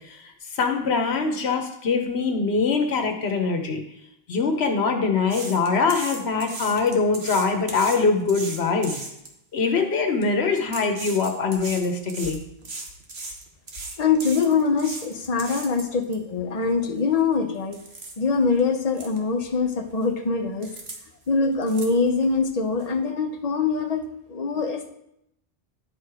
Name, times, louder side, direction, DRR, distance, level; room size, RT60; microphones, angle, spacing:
voice 1, 0.5-3.8 4.3-9.0 9.5-12.4, left 4 dB, 85° left, 5 dB, 1.2 m, -23 dB
sound 1, 5.3-9.3 10.0-10.2 10.6-16.1 16.6-16.7 17.2-17.3 17.7-18.1 18.6-18.7 18.9-19.2 19.5-20.0 20.6-21.0 21.2-22.4 22.8-22.9, right 3 dB, 75° right, 1.5 m, -37 dB
voice 2, 14.0-17.8 18.2-20.7 21.3-24.0 24.3-24.9, left 4 dB, 40° left, 5 dB, 0.9 m, -23 dB
10.5 x 4.7 x 4.8 m, 0.78 s
omnidirectional pair, 1.1 m